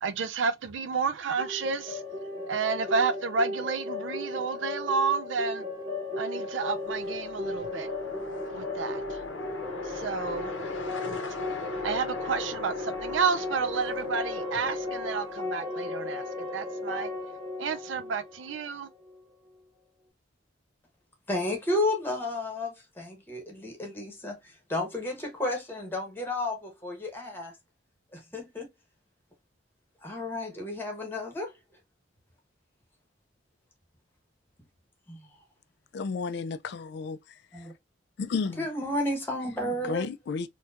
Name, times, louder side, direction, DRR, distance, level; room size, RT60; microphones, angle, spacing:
voice 1, 0.0-2.0 2.5-5.6 6.2-7.9 8.5-9.2 9.8-10.5 11.8-17.1 17.6-18.9, right 5 dB, 80° right, 0.4 m, -30 dB
sound 1, 1.4-19.1, left 2 dB, 30° right, 2.0 m, -36 dB
sound 2, 6.6-15.6, left 4 dB, 85° left, 0.8 m, -40 dB
voice 2, 21.3-27.5 28.1-28.7 30.0-31.5 35.1-35.3 37.5-37.7 38.6-40.1, left 1 dB, 10° left, 1.0 m, -32 dB
voice 3, 35.9-37.2 37.5-37.7 38.2-38.7 39.8-40.5, left 4 dB, 60° left, 0.3 m, -32 dB
4.4 x 2.3 x 2.4 m
head